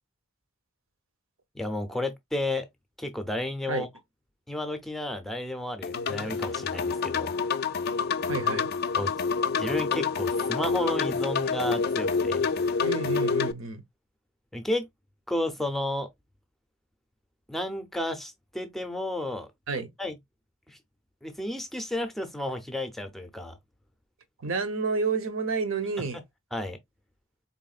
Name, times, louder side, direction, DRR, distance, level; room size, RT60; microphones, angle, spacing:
voice 1, 1.5-2.7 3.0-3.9 4.5-7.4 8.9-9.1 9.6-12.5 14.5-14.9 15.3-16.1 17.5-19.5 20.0-20.2 20.7-20.8 21.2-23.6 26.1-26.2 26.5-26.8, left 1 dB, ahead, 0.6 m, -32 dB
sound 1, 5.8-13.5, left 5 dB, 45° left, 0.3 m, -27 dB
voice 2, 8.3-8.7 12.8-13.8 19.7-19.9 24.4-26.2, right 4 dB, 65° right, 0.8 m, -30 dB
4.1 x 3.5 x 2.4 m
head